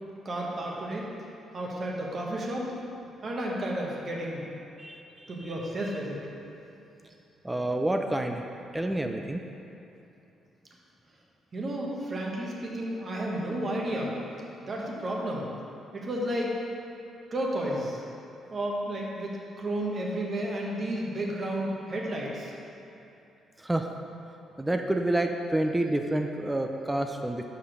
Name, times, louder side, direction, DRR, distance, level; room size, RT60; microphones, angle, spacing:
voice 1, 0.2-1.1 1.5-2.7 3.2-4.5 5.3-6.3 11.5-14.1 14.6-15.5 15.9-16.5 17.3-18.0 18.5-19.3 19.6-22.5, right 1 dB, 40° right, -2 dB, 1.4 m, -32 dB
voice 2, 7.4-8.4 8.7-9.4 23.7-23.8 24.6-27.4, right 1 dB, 10° right, 4 dB, 0.4 m, -28 dB
5.6 x 5.1 x 6.4 m, 2.8 s
cardioid pair, 90°, 0 cm